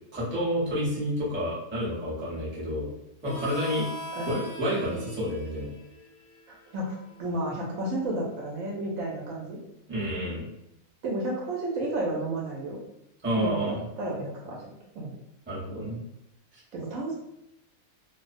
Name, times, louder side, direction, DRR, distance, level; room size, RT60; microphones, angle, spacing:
voice 1, 0.1-2.9 3.2-3.9 4.3-5.7 9.9-10.5 13.2-13.8 15.5-16.0 16.5-16.6, equal, 10° right, -8 dB, 0.6 m, -29 dB
Harmonica, 3.2-8.5, right 1 dB, 90° left, 1.1 m, -42 dB
voice 2, 6.5-6.9 7.2-9.6 11.0-12.8 13.4-14.7 15.0-15.1 16.7-17.1, right 1 dB, 70° right, -3 dB, 0.9 m, -32 dB
2.4 x 2.0 x 2.4 m, 0.83 s
omnidirectional pair, 1.6 m